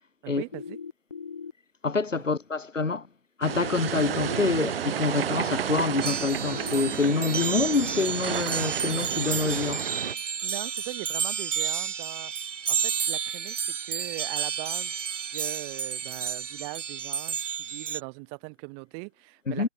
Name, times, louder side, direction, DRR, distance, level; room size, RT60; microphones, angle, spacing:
voice 1, 0.2-0.8 10.4-12.3 12.7-14.9 15.3-19.7, right 40 dB or more, 25° right, 6.1 m, -40 dB
sound 1, 0.5-1.5 3.5-4.5 6.5-7.5, left 6 dB, 15° left, 0.4 m, -39 dB
voice 2, 1.8-3.1 3.4-9.9 19.5-19.7, left 4 dB, 85° left, 2.2 m, -26 dB
sound 2, 3.4-10.1, right 9 dB, 50° right, 2.7 m, -32 dB
sound 3, 6.0-18.0, right 7 dB, 75° right, 0.8 m, -31 dB
figure-of-eight pair, 135°, 37 cm